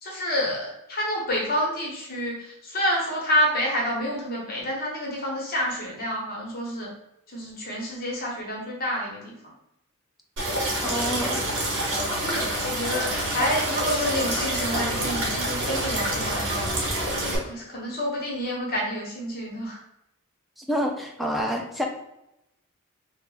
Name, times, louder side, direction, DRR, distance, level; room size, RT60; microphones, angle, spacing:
voice 1, 0.0-6.9 7.3-9.3 12.2-16.7 17.1-19.8, equal, 45° left, -3 dB, 1.0 m, -28 dB
sound 1, 10.4-17.4, right 1 dB, 60° right, 1.1 m, -27 dB
voice 2, 10.8-11.4 20.6-21.9, equal, ahead, 0 dB, 0.5 m, -27 dB
2.9 x 2.4 x 3.9 m, 0.84 s
head